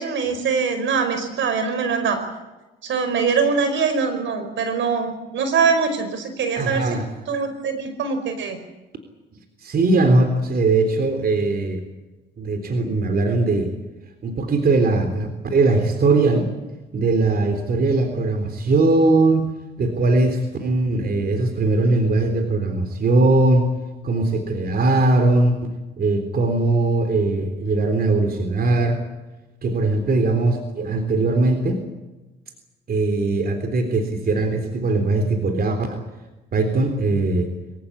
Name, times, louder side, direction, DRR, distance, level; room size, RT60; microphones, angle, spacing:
voice 1, 0.0-2.2 2.8-7.0 7.3-8.6, right 5 dB, 70° right, 9 dB, 5.0 m, -23 dB
voice 2, 6.6-7.0 9.6-11.8 12.4-13.7 14.2-16.5 16.9-19.5 19.8-23.7 24.0-25.6 26.0-29.0 29.6-31.8 32.9-36.0 36.5-37.5, right 2 dB, 50° right, 6 dB, 3.6 m, -20 dB
25.0 x 16.0 x 10.0 m, 1.1 s
cardioid pair, 90°, 20 cm